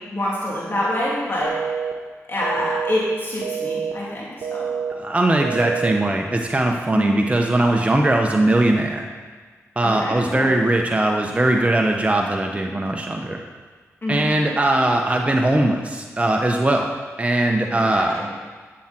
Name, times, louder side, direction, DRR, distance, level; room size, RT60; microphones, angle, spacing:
voice 1, 0.0-1.5 2.3-4.7 6.9-7.2 9.8-10.5 14.0-14.2 17.7-18.3, left 1 dB, 40° left, -6 dB, 3.2 m, -26 dB
sound 1, 1.4-1.9 2.4-2.9 3.4-3.9 4.4-4.9 5.4-5.9, right 7 dB, 90° right, 0.9 m, -27 dB
voice 2, 4.9-9.1 9.8-13.4 14.1-16.9 17.2-18.2, right 1 dB, 20° right, 2 dB, 1.1 m, -20 dB
11.5 x 7.5 x 4.5 m, 1.5 s
cardioid pair, 50°, 6 cm